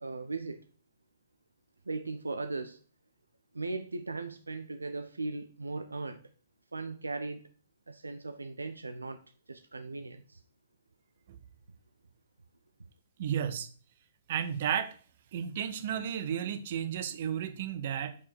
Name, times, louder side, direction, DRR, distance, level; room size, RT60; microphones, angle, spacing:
voice 1, 0.0-0.6 1.9-2.8 3.5-6.2 6.7-7.5 7.9-9.2 9.5-10.4, right 3 dB, 80° right, 9 dB, 0.5 m, -38 dB
voice 2, 13.2-13.7 14.3-14.9 15.3-18.2, right 9 dB, 50° right, 10 dB, 0.9 m, -33 dB
5.5 x 4.9 x 6.3 m, 0.41 s
figure-of-eight pair, 120°, 0 cm